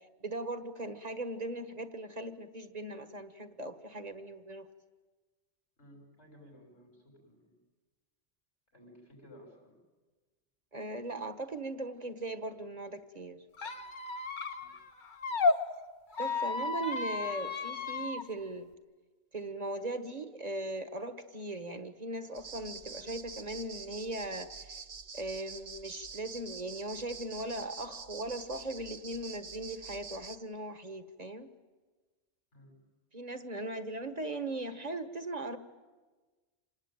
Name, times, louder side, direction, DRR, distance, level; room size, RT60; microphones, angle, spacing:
voice 1, 0.2-4.7 10.7-13.4 16.2-18.7 19.3-24.5 25.1-31.5 33.1-35.6, right 2 dB, 35° right, 9 dB, 1.5 m, -39 dB
voice 2, 5.8-7.6 8.7-9.8 14.6-14.8 32.5-32.8, equal, 85° left, 1 dB, 6.8 m, -56 dB
Squeak, 13.6-15.6 16.1-18.2, left 4 dB, 45° left, 1.2 m, -33 dB
sound 1, 22.3-30.4, right 5 dB, 55° right, 1.2 m, -46 dB
27.0 x 19.0 x 9.1 m, 1.3 s
omnidirectional pair, 1.1 m